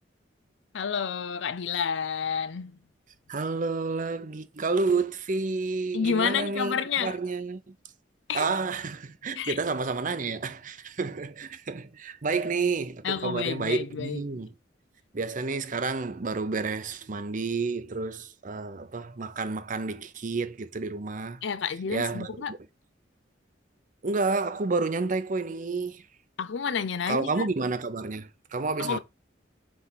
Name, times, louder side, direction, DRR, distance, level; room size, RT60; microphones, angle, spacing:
voice 1, 0.7-2.8 5.9-7.2 8.3-8.5 9.4-9.6 13.0-14.2 21.4-22.5 26.4-27.5 28.8-29.0, left 6 dB, 75° left, 0.5 m, -30 dB
voice 2, 3.3-6.7 7.0-7.7 8.3-14.5 15.1-21.4 21.9-22.6 24.0-26.0 27.1-29.0, right 4 dB, 45° right, 0.6 m, -30 dB
5.9 x 3.4 x 5.6 m
head